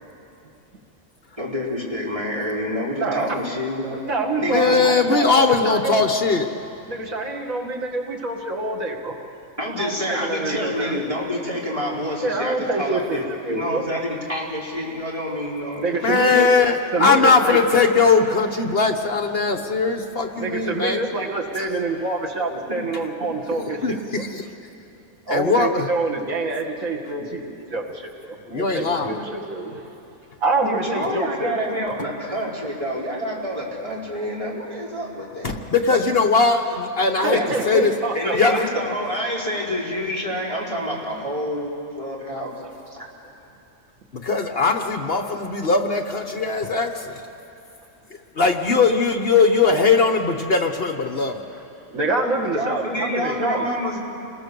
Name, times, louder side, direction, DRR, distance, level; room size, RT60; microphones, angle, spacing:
voice 1, 1.4-4.0 4.4-4.8 9.6-16.1 22.7-22.8 30.7-35.5 37.3-37.5 38.1-42.5 42.9-43.0 52.5-54.0, equal, 25° right, -5 dB, 4.4 m, -27 dB
voice 2, 3.0-3.4 4.0-6.0 6.9-9.2 9.7-11.0 12.2-13.2 13.5-13.8 15.8-16.5 16.9-17.6 20.4-24.2 25.3-29.8 30.4-31.6 31.8-31.9 37.1-38.6 42.6-42.7 51.9-53.7, right 2 dB, 85° right, 0 dB, 2.4 m, -26 dB
voice 3, 4.5-6.5 16.0-21.0 21.6-21.8 23.8-24.5 25.3-25.9 28.5-29.1 35.4-37.4 37.7-37.9 38.3-38.6 44.1-47.2 48.4-51.4, left 4 dB, 50° left, 5 dB, 1.3 m, -20 dB
29.5 x 20.5 x 6.9 m, 2.8 s
omnidirectional pair, 1.4 m